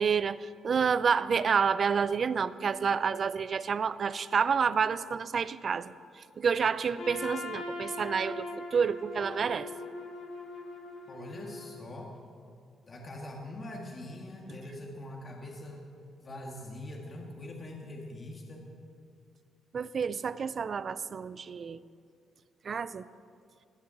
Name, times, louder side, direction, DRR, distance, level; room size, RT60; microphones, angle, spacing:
voice 1, 0.0-9.7 19.7-21.8 22.6-23.0, right 6 dB, 45° right, 16 dB, 0.5 m, -29 dB
Trumpet, 7.0-12.1, left 2 dB, 65° left, 2.2 m, -41 dB
voice 2, 11.1-12.1 12.9-15.8 16.2-18.6, left 1 dB, 35° left, -1 dB, 2.0 m, -43 dB
17.0 x 7.2 x 7.9 m, 2.3 s
cardioid pair, 90°, 0 cm